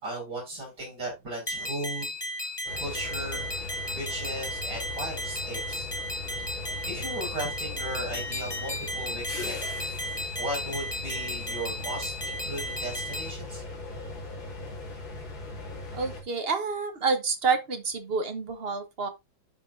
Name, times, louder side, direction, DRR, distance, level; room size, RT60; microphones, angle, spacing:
voice 1, 0.0-2.5 2.8-3.5 3.9-5.9 6.3-6.4 6.8-9.6 10.3-13.6, right 1 dB, 55° right, 6.5 m, -36 dB
sound 1, 1.5-13.3, left 1 dB, 15° left, 1.1 m, -35 dB
sound 2, 2.7-16.2, left 2 dB, 70° left, 3.4 m, -39 dB
voice 2, 15.9-19.1, right 4 dB, 35° right, 1.1 m, -28 dB
11.5 x 5.3 x 2.7 m
omnidirectional pair, 2.1 m